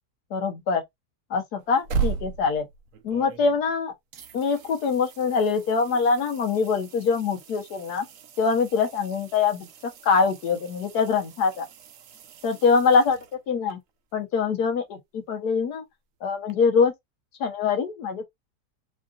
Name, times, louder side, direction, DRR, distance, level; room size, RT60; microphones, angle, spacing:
voice 1, 0.3-0.8 1.3-2.7 3.0-3.9 4.3-8.1 8.4-11.7 12.4-13.2 13.5-13.8 14.1-15.8 16.2-16.9 17.4-18.3, left 5 dB, 75° left, 1.6 m, -24 dB
sound 1, 1.6-3.8 4.1-13.7 16.5-16.6, right 6 dB, 65° right, 1.0 m, -37 dB
4.9 x 2.6 x 2.4 m
omnidirectional pair, 1.7 m